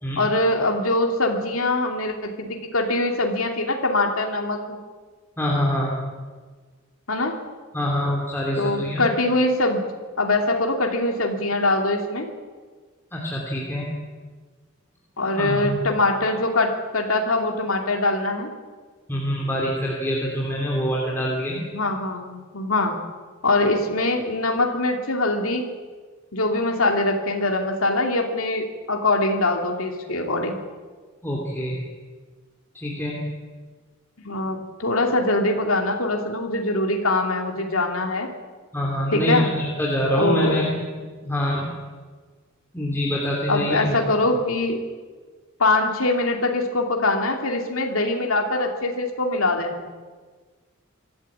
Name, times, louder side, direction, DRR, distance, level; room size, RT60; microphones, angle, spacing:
voice 1, 0.2-4.8 7.1-7.4 8.6-9.8 10.2-12.3 15.2-18.5 21.5-22.9 23.4-25.7 26.3-30.6 34.2-38.3 39.1-39.5 40.2-40.7 43.5-44.8 45.6-49.9, left 2 dB, 80° left, 2 dB, 2.7 m, -23 dB
voice 2, 5.4-6.0 7.7-9.1 13.1-13.9 15.3-15.9 19.1-21.6 31.2-31.8 32.7-33.2 38.7-40.7 41.2-41.7 42.7-44.0, equal, 10° left, -3 dB, 2.9 m, -25 dB
25.0 x 13.5 x 8.7 m, 1.5 s
head